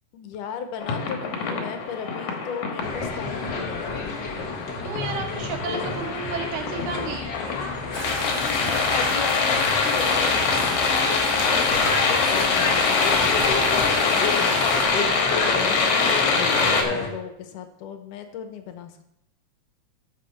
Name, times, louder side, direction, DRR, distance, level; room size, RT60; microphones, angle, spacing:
voice 1, 0.1-4.1 8.9-10.8 11.1-13.3 13.7-15.8 16.2-19.1, left 7 dB, 85° left, 7 dB, 2.4 m, -36 dB
sound 1, 0.8-16.8, left 4 dB, 70° left, 2.6 m, -24 dB
sound 2, 2.8-17.1, left 3 dB, 50° left, 1.4 m, -31 dB
voice 2, 4.8-7.3, right 4 dB, 75° right, 3 dB, 2.6 m, -32 dB
sound 3, 7.9-14.9, left 2 dB, 30° left, 1.5 m, -30 dB
13.5 x 6.0 x 4.2 m, 0.80 s
omnidirectional pair, 3.6 m